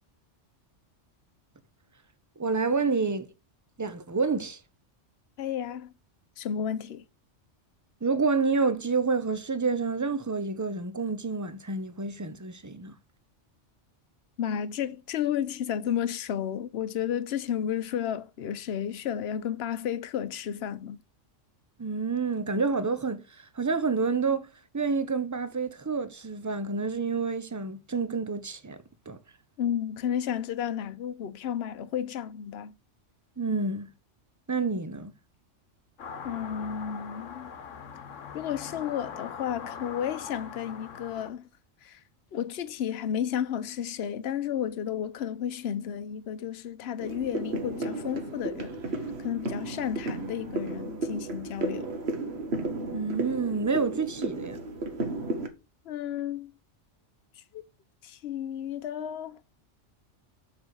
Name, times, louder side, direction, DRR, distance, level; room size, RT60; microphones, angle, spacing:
voice 1, 2.4-3.3 3.8-4.6 8.0-13.0 21.8-24.5 24.7-28.8 29.1-29.2 33.4-33.9 34.5-35.1 52.8-54.6, right 4 dB, 20° right, 0.7 m, -28 dB
voice 2, 5.4-5.9 6.4-7.0 14.4-21.0 29.6-32.8 36.2-37.6 38.3-41.5 41.8-42.0 42.3-48.8 49.2-51.9 55.8-56.5 57.4-57.6 58.0-59.4, left 9 dB, 60° left, 1.0 m, -32 dB
sound 1, 36.0-41.3, left 6 dB, 80° left, 1.3 m, -41 dB
sound 2, 47.0-55.5, right 2 dB, 60° right, 1.5 m, -34 dB
7.3 x 6.2 x 4.7 m
omnidirectional pair, 1.3 m